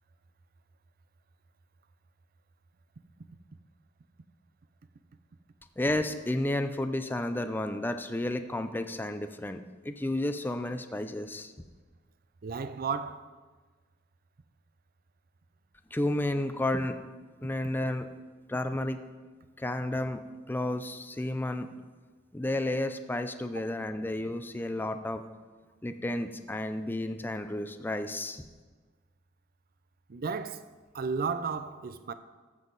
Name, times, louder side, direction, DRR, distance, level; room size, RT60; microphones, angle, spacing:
voice 1, 5.8-11.5 15.9-17.0 17.4-18.1 18.5-19.0 19.6-20.2 20.5-21.7 22.3-25.4 25.8-28.5, left 1 dB, 10° left, 0.5 m, -32 dB
voice 2, 12.4-13.3 30.1-30.7 30.9-32.1, right 5 dB, 50° right, 0.5 m, -33 dB
14.0 x 7.5 x 4.0 m
head